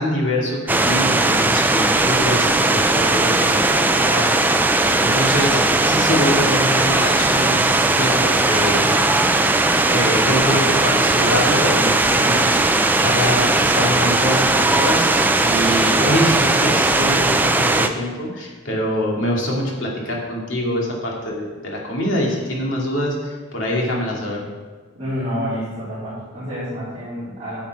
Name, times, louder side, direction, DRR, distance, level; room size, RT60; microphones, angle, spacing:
voice 1, 0.0-4.3 5.0-8.8 9.9-12.6 13.0-24.4, equal, 65° left, -3 dB, 2.2 m, -24 dB
sound 1, 0.7-17.9, right 2 dB, 10° right, 0.3 m, -18 dB
voice 2, 25.0-27.6, equal, 25° right, -14 dB, 3.2 m, -28 dB
9.1 x 7.4 x 4.6 m, 1.4 s
head